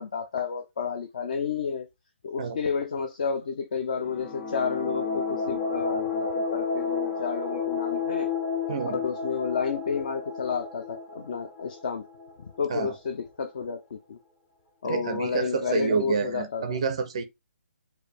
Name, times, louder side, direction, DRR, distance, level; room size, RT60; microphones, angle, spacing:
voice 1, 0.0-1.9 2.2-8.3 8.9-12.1 12.4-14.2 14.8-16.8, left 6 dB, 35° left, 0.4 m, -31 dB
sound 1, 3.9-12.6, left 5 dB, 10° left, 1.8 m, -31 dB
voice 2, 8.7-9.0 12.7-12.9 14.8-17.2, right 5 dB, 25° right, 0.4 m, -28 dB
4.5 x 2.6 x 3.2 m
hypercardioid pair, 175°, 7 cm